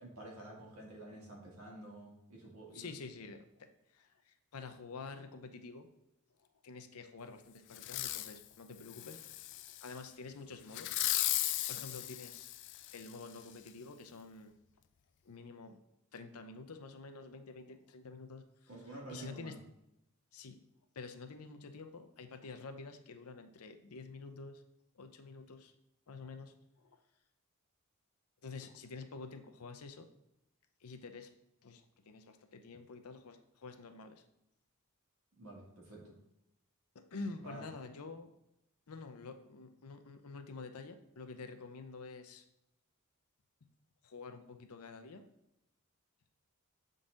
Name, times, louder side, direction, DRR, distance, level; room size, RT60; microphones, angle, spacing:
voice 1, 0.0-2.9 18.7-19.5 35.4-36.1 37.4-37.6, right 1 dB, 70° right, -3 dB, 2.1 m, -49 dB
voice 2, 2.7-5.9 6.4-9.2 9.5-12.5 12.9-14.5 15.2-15.8 16.1-18.7 19.1-19.6 20.3-20.6 20.9-24.6 24.9-25.7 26.1-27.0 28.4-30.1 30.8-31.3 31.6-34.2 36.9-38.3 38.9-42.4 44.0-45.3, left 4 dB, 90° left, 7 dB, 0.6 m, -48 dB
Fireworks, 7.7-8.4 8.9-9.9 10.7-13.1 13.7-13.8, left 14 dB, 55° left, 0.3 m, -36 dB
7.4 x 3.9 x 3.8 m, 0.85 s
head